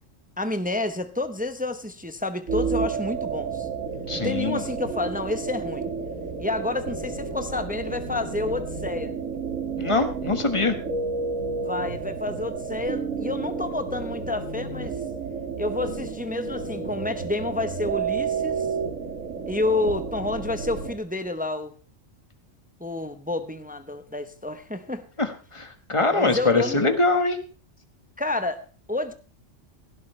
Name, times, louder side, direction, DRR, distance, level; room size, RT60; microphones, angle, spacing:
voice 1, 0.4-3.7 4.2-5.9 6.4-9.1 11.6-15.0 15.6-18.7 19.5-21.7 22.8-25.0 26.1-26.8 28.2-29.1, left 2 dB, 10° right, 9 dB, 0.6 m, -29 dB
sound 1, 2.5-21.0, right 5 dB, 85° right, 2.0 m, -31 dB
voice 2, 4.1-4.6 9.8-10.8 25.2-27.4, left 3 dB, 25° left, 7 dB, 1.5 m, -23 dB
17.0 x 11.5 x 3.2 m, 0.35 s
omnidirectional pair, 1.3 m